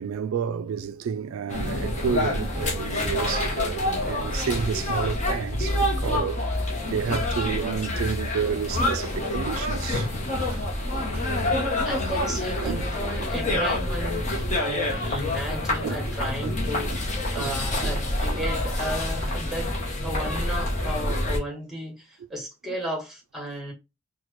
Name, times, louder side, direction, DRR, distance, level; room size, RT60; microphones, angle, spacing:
voice 1, 0.0-10.1 10.5-10.6 11.1-11.3 12.3-12.9 15.8-16.0 16.4-16.6 16.8-17.0 17.4-18.0, right 7 dB, 75° right, 0.3 m, -31 dB
sound 1, 1.5-21.4, left 1 dB, 35° left, 0.8 m, -27 dB
voice 2, 11.8-19.7 20.0-23.7, equal, ahead, 1.3 m, -34 dB
4.2 x 2.1 x 3.0 m
head